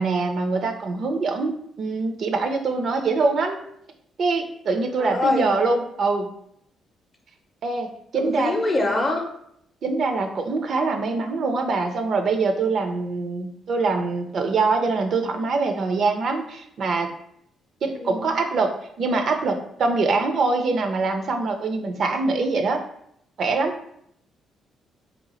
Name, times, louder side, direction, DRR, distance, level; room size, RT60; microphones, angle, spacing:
voice 1, 0.0-1.5 1.8-3.6 4.2-6.3 7.6-8.5 9.8-17.1 17.8-22.8 23.4-23.7, right 3 dB, 60° right, 5 dB, 0.5 m, -24 dB
voice 2, 5.0-5.5 8.1-9.2 17.9-18.3, left 2 dB, 30° left, 2 dB, 0.6 m, -24 dB
2.8 x 2.3 x 4.0 m, 0.71 s
cardioid pair, 90°, 0 cm